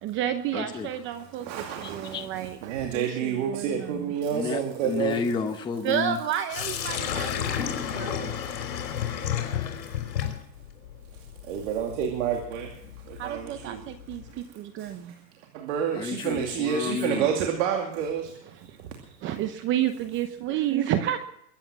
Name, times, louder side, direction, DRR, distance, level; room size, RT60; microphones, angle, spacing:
voice 1, 0.0-4.1 5.8-8.4 13.1-15.1 19.2-21.2, right 11 dB, 25° right, 9 dB, 0.8 m, -31 dB
voice 2, 0.5-0.9 1.8-2.3 4.3-6.2 9.4-9.8 15.9-17.3, left 5 dB, 10° left, 6 dB, 0.8 m, -31 dB
voice 3, 1.1-5.2 11.1-12.8 13.0-13.8 14.3-14.4 14.8-15.2 15.5-18.3 18.6-19.0, right 8 dB, 50° right, 2 dB, 2.5 m, -30 dB
Sink (filling or washing), 6.5-14.4, left 9 dB, 75° left, 3.8 m, -33 dB
22.5 x 9.8 x 6.1 m, 0.77 s
hypercardioid pair, 145°, 50 cm